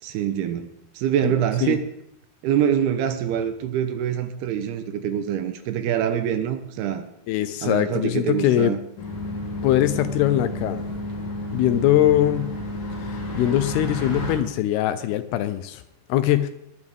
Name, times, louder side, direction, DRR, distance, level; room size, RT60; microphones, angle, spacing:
voice 1, 0.0-0.7 0.9-1.8 2.4-7.0 7.6-8.8, right 9 dB, 80° right, 9 dB, 2.6 m, -25 dB
voice 2, 7.3-8.8 9.6-10.8 11.5-12.5 13.4-15.8 16.1-16.5, left 13 dB, 80° left, 11 dB, 2.4 m, -21 dB
sound 1, 9.0-14.4, left 1 dB, 50° left, 4.8 m, -31 dB
19.0 x 11.0 x 3.6 m, 0.78 s
omnidirectional pair, 4.9 m